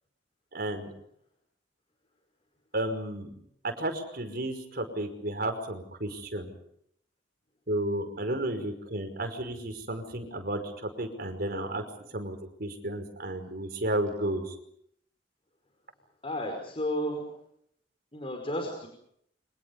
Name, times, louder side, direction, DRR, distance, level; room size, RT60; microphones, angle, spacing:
voice 1, 0.5-0.9 2.7-3.3 3.6-6.5 7.7-11.8 12.1-14.6, right 1 dB, 60° right, 6 dB, 5.4 m, -32 dB
voice 2, 16.2-17.3 18.1-18.9, equal, 30° left, 2 dB, 5.2 m, -32 dB
30.0 x 26.0 x 5.5 m, 0.70 s
head